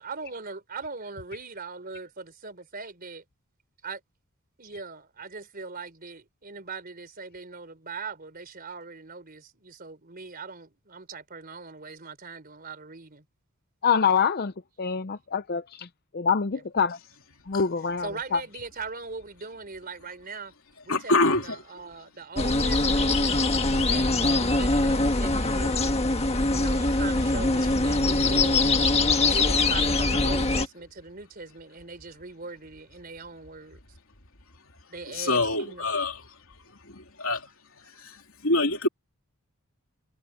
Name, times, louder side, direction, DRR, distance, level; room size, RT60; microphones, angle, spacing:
voice 1, 0.0-3.2 3.8-4.0 4.6-13.2 16.5-16.6 18.0-20.5 20.8-26.0 26.5-28.7 29.3-33.8 34.9-35.9, right 4 dB, 40° right, 3.9 m, -40 dB
voice 2, 13.8-14.5 14.8-15.9 16.1-17.0 17.5-18.4, left 6 dB, 45° left, 0.5 m, -25 dB
voice 3, 20.9-21.6 35.1-36.2 36.9-37.5 38.0-38.9, left 2 dB, 65° left, 3.5 m, -25 dB
sound 1, 22.4-30.7, left 2 dB, 30° left, 1.5 m, -23 dB
head